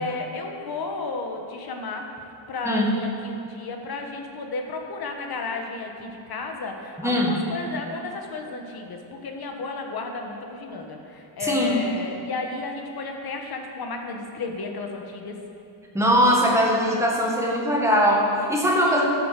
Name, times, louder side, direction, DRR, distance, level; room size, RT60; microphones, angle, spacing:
voice 1, 0.0-2.1 2.5-15.4 18.8-19.1, left 3 dB, 50° left, 3 dB, 1.5 m, -33 dB
voice 2, 7.0-7.4 11.4-11.8 15.9-19.1, equal, 5° right, -3 dB, 1.8 m, -21 dB
12.5 x 8.1 x 6.7 m, 2.8 s
wide cardioid pair, 165°, 47 cm